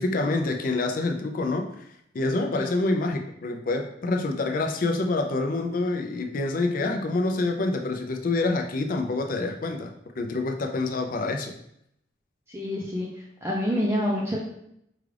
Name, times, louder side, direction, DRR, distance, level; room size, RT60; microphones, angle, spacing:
voice 1, 0.0-1.7 2.1-11.5, left 2 dB, 45° left, 4 dB, 0.4 m, -27 dB
voice 2, 12.5-13.1 13.4-14.4, equal, 15° right, -3 dB, 0.4 m, -27 dB
4.8 x 2.4 x 3.2 m, 0.76 s
head